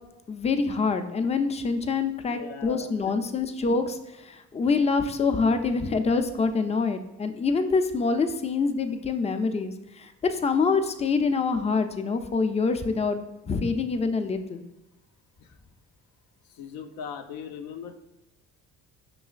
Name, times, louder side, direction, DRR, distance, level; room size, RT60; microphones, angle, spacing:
voice 1, 0.3-14.6, left 4 dB, 20° left, 8 dB, 0.3 m, -26 dB
voice 2, 2.3-3.1 15.4-15.6 16.5-18.0, left 7 dB, 80° left, 7 dB, 0.5 m, -39 dB
5.4 x 3.0 x 2.4 m, 1.0 s
supercardioid pair, 70°, 35 cm